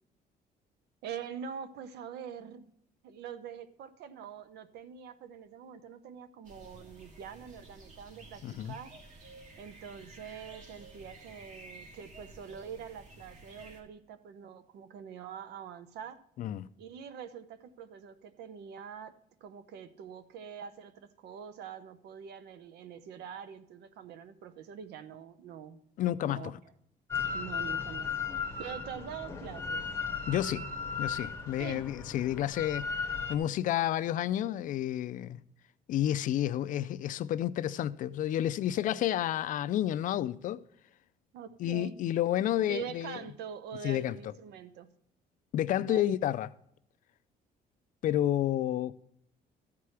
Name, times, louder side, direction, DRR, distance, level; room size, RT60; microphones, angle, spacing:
voice 1, 1.0-2.7 3.0-9.0 9.6-16.2 16.8-19.1 19.4-25.8 26.2-26.5 27.3-28.1 28.6-29.8 31.6-31.9 41.3-41.9 42.7-44.9 45.8-46.2, right 8 dB, 85° right, 0.8 m, -44 dB
sound 1, 6.4-13.8, right 2 dB, 50° right, 1.8 m, -52 dB
voice 2, 8.4-8.8 16.4-16.7 26.0-26.5 30.3-30.7 31.0-35.4 35.9-40.6 41.6-43.2 43.8-44.1 45.5-46.5 48.0-48.9, left 12 dB, 55° left, 0.4 m, -30 dB
Drill, 27.1-33.4, left 5 dB, 15° left, 0.8 m, -36 dB
13.5 x 4.8 x 5.7 m
cardioid pair, 160°, 17 cm